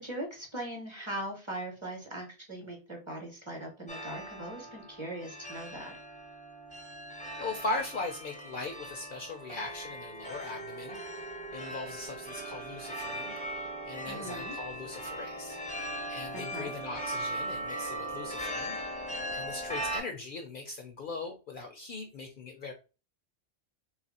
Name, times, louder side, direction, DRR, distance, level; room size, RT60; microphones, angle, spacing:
voice 1, 0.0-5.9 14.1-14.5 16.3-16.7, right 1 dB, 30° right, 1 dB, 0.9 m, -40 dB
sound 1, 3.9-20.0, right 1 dB, 10° left, 0.4 m, -39 dB
voice 2, 7.4-11.3 11.5-13.3 13.9-15.6 16.1-18.7 19.3-22.7, left 3 dB, 60° left, 4 dB, 0.6 m, -39 dB
2.9 x 2.4 x 4.0 m, 0.32 s
omnidirectional pair, 1.2 m